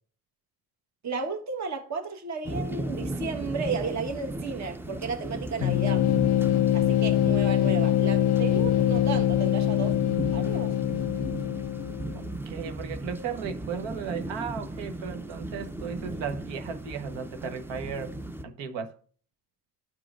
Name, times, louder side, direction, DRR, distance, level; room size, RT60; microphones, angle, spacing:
voice 1, 1.0-6.1 6.7-10.0 10.3-10.7, right 4 dB, 35° right, 1.2 m, -33 dB
sound 1, 2.4-18.4, right 1 dB, 5° right, 0.5 m, -36 dB
sound 2, 5.6-12.2, left 12 dB, 55° left, 0.6 m, -24 dB
voice 2, 12.1-18.2 18.4-18.9, right 6 dB, 65° right, 1.2 m, -35 dB
14.0 x 4.9 x 2.4 m
hypercardioid pair, 60°, 47 cm